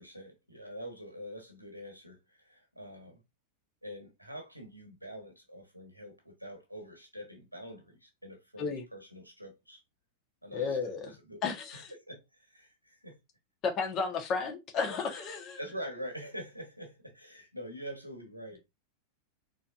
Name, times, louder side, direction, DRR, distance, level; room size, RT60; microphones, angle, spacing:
voice 1, 0.0-3.2 3.8-9.8 10.4-11.4 11.7-13.2 15.6-18.6, equal, 90° right, 1.5 m, -45 dB
voice 2, 10.5-11.1 11.4-11.9 13.6-15.6, left 5 dB, 35° left, 1.3 m, -33 dB
4.1 x 4.0 x 2.6 m
figure-of-eight pair, 90°, 0 cm